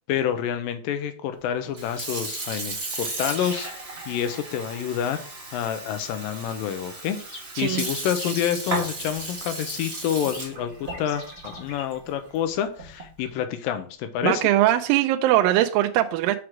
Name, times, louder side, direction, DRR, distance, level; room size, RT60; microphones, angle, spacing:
voice 1, 0.1-3.7 4.1-5.2 5.5-7.2 7.6-14.4, left 9 dB, 80° left, 2.3 m, -28 dB
Sink (filling or washing) / Fill (with liquid), 1.6-13.2, right 2 dB, 55° right, 0.6 m, -35 dB
sound 1, 6.9-8.4 9.7-11.9 13.4-13.8, left 2 dB, 60° left, 0.8 m, -43 dB
voice 2, 7.6-7.9 14.2-16.4, right 13 dB, 80° right, 2.2 m, -21 dB
6.0 x 4.9 x 5.8 m
omnidirectional pair, 4.2 m